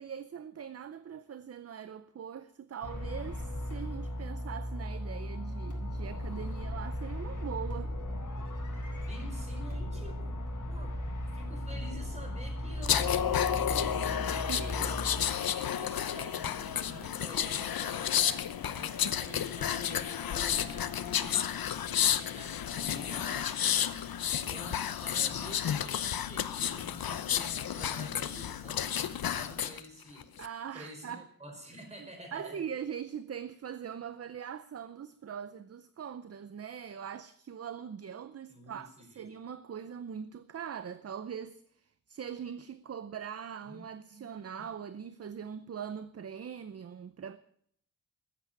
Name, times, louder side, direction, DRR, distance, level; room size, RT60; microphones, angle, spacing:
voice 1, 0.0-7.9 14.1-14.8 30.4-31.3 32.0-47.4, right 8 dB, 45° right, 0.6 m, -42 dB
sound 1, 2.8-15.2, equal, 60° left, 4.7 m, -37 dB
voice 2, 9.1-10.4 10.7-10.9 11.3-15.0 15.6-18.1 18.6-21.4 22.0-23.9 24.3-30.2 30.7-32.6 38.5-39.2 43.7-44.6, equal, 20° right, 5.0 m, -48 dB
sound 2, 12.8-29.8 30.2-30.5, left 9 dB, 85° left, 0.8 m, -31 dB
14.0 x 8.4 x 9.3 m
wide cardioid pair, 130°, 35 cm